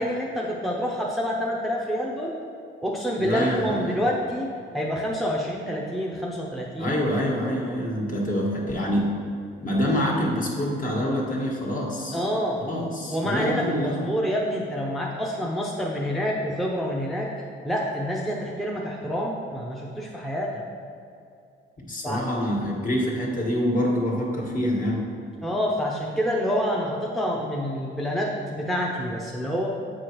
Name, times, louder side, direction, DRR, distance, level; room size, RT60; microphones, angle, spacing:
voice 1, 0.0-2.4 2.8-6.9 12.1-12.7 13.1-17.3 17.6-20.6 22.0-22.2 25.4-29.7, equal, ahead, -3 dB, 0.7 m, -27 dB
voice 2, 3.2-4.0 6.8-9.1 9.6-12.2 12.6-14.1 21.8-25.0, equal, 45° left, -3 dB, 1.6 m, -26 dB
8.1 x 4.8 x 3.0 m, 2.4 s
cardioid pair, 90°, 20 cm